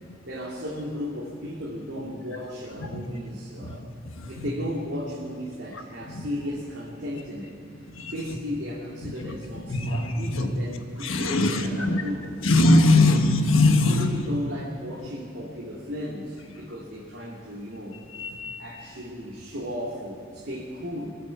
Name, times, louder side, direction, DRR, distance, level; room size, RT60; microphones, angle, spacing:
voice 1, 0.2-3.9 4.3-7.5 8.0-13.2 13.8-18.0 18.6-21.1, equal, 65° right, -6 dB, 2.5 m, -35 dB
voice 2, 9.7-10.5 11.0-12.0 12.4-14.1 18.2-18.6, left 2 dB, 85° left, 5 dB, 1.4 m, -21 dB
23.5 x 8.3 x 7.1 m, 2.3 s
head